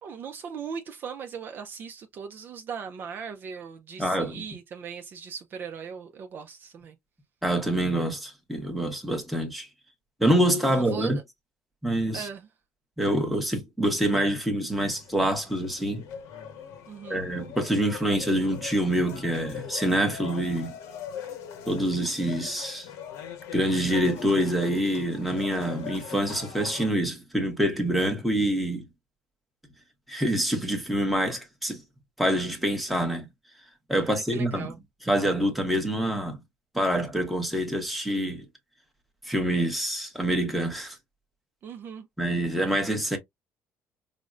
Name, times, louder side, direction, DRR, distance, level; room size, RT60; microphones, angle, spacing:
voice 1, 0.0-7.0 10.7-11.1 12.1-12.5 16.9-17.2 34.0-34.8 41.6-42.1, right 6 dB, 40° right, 0.4 m, -39 dB
voice 2, 4.0-4.4 7.4-9.7 10.2-11.2 11.8-12.3 13.0-16.0 17.1-20.7 21.7-22.9 23.5-28.9 30.1-31.8 32.2-33.3 33.9-34.7 35.1-36.4 36.7-38.4 39.2-41.0 42.2-43.2, right 1 dB, ahead, 0.9 m, -26 dB
sound 1, 14.7-26.9, left 8 dB, 85° left, 0.9 m, -41 dB
5.0 x 2.1 x 2.4 m
cardioid pair, 160°, 5 cm